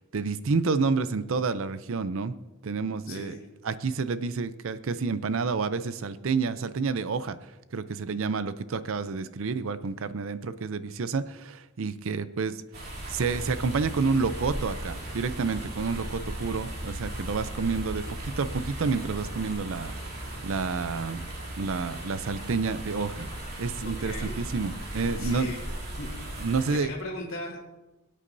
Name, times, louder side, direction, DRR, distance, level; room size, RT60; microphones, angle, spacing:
voice 1, 0.0-2.3 2.6-3.4 3.6-12.6 13.1-21.2 21.6-23.3 23.6-25.5 26.4-26.9, right 4 dB, 65° right, 13 dB, 0.5 m, -29 dB
voice 2, 3.1-3.4 23.8-24.4 25.2-25.6 25.9-26.1 26.7-27.7, left 1 dB, 65° left, -7 dB, 2.0 m, -37 dB
sound 1, 12.7-26.8, right 1 dB, 45° right, 3.1 m, -37 dB
23.0 x 8.4 x 2.7 m, 1.0 s
head